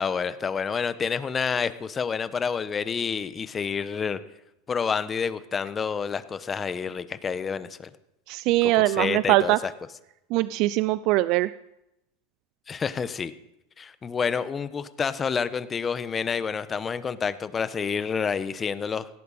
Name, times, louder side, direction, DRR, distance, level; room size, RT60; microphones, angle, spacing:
voice 1, 0.0-4.2 4.7-7.9 8.6-9.7 12.7-13.3 13.8-19.1, left 6 dB, 25° left, 13 dB, 1.1 m, -28 dB
voice 2, 8.3-9.6 10.3-11.5, right 17 dB, 55° right, 16 dB, 0.4 m, -22 dB
17.0 x 17.0 x 4.3 m, 0.89 s
hypercardioid pair, 105°, 0 cm